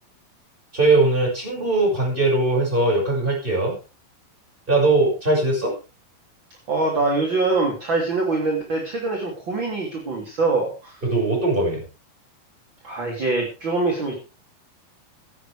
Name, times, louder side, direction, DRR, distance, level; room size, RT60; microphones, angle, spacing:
voice 1, 0.7-3.8 4.7-5.7 11.0-11.8, right 2 dB, 10° right, -1 dB, 6.1 m, -20 dB
voice 2, 6.7-11.0 12.8-14.1, right 3 dB, 30° right, -1 dB, 2.8 m, -24 dB
16.0 x 12.5 x 3.5 m, 0.33 s
omnidirectional pair, 5.8 m